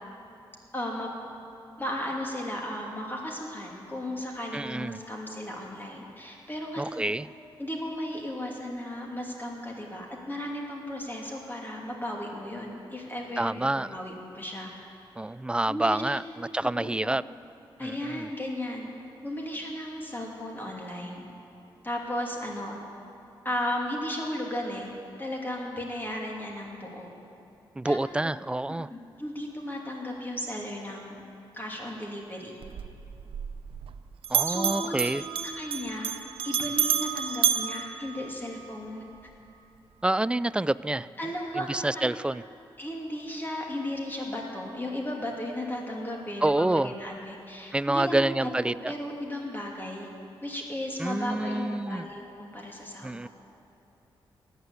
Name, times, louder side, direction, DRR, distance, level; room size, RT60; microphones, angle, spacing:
voice 1, 0.7-1.1 1.8-7.0 7.6-14.7 15.7-16.3 16.8-17.3 17.8-18.9 19.2-21.3 21.8-22.8 23.4-24.9 25.2-27.1 27.8-28.0 28.7-31.2 31.5-32.5 34.5-36.1 36.4-39.0 41.2-42.2 42.8-48.5 48.8-50.1 50.4-53.3, left 1 dB, 20° left, -1 dB, 2.8 m, -35 dB
voice 2, 4.5-5.0 6.8-7.3 13.4-14.0 15.2-17.2 17.8-18.3 27.8-28.9 34.3-35.2 40.0-41.1 41.6-42.4 46.4-46.9 47.7-48.9 51.0-52.1 53.0-53.3, right 2 dB, 10° right, 18 dB, 0.3 m, -27 dB
Bell, 32.6-34.0 34.2-38.7, right 8 dB, 75° right, 0.6 m, -30 dB
14.0 x 9.6 x 8.3 m, 2.6 s
cardioid pair, 65°, 9 cm